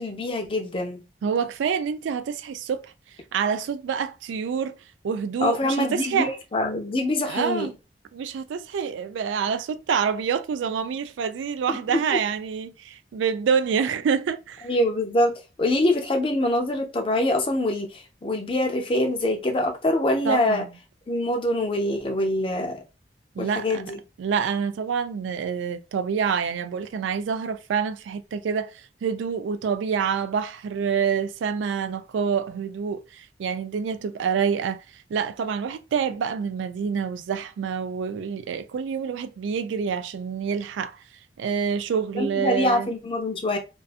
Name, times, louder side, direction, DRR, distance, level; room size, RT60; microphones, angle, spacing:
voice 1, 0.0-1.0 5.4-7.7 11.7-12.2 14.6-20.6 21.1-22.8 23.4-24.0 42.1-43.6, left 1 dB, 30° left, 0.5 m, -25 dB
voice 2, 1.2-2.9 3.3-4.8 5.0-6.3 7.3-7.7 8.1-14.7 20.2-20.7 23.4-23.8 24.2-41.0 41.4-42.9, right 6 dB, 90° right, 0.3 m, -27 dB
2.4 x 2.3 x 2.4 m
head